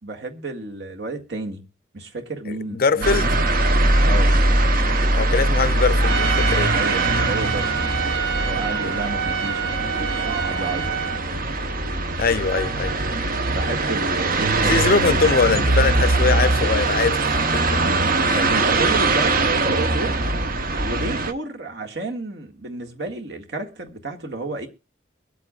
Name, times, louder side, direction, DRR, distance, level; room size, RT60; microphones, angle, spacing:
voice 1, 0.0-1.6 1.9-3.4 4.0-4.4 6.7-11.0 11.2-11.4 13.4-15.1 17.8-20.2 20.8-24.7, right 2 dB, 65° right, 1.9 m, -31 dB
voice 2, 2.5-3.4 5.2-6.7 12.2-12.9 14.7-17.2 17.5-17.6 18.3-18.5, left 4 dB, 55° left, 0.6 m, -22 dB
sound 1, 3.0-21.3, right 2 dB, 50° right, 1.0 m, -21 dB
Trumpet, 6.0-11.2, right 7 dB, 85° right, 1.3 m, -27 dB
23.5 x 8.2 x 2.4 m
head